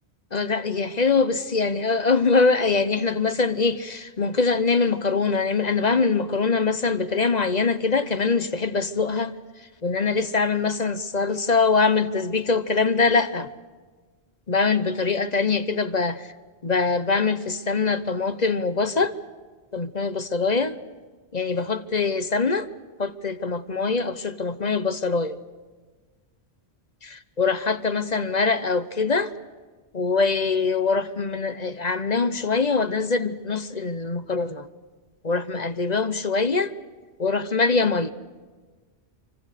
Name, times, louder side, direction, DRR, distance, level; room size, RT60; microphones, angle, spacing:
voice 1, 0.3-9.3 9.8-13.5 14.5-16.3 16.6-19.1 19.7-20.8 21.3-22.7 23.0-25.4 27.0-29.3 29.9-34.7 35.2-36.7 37.2-38.1, left 4 dB, 40° left, 1.0 m, -23 dB
27.0 x 25.0 x 6.7 m
omnidirectional pair, 1.2 m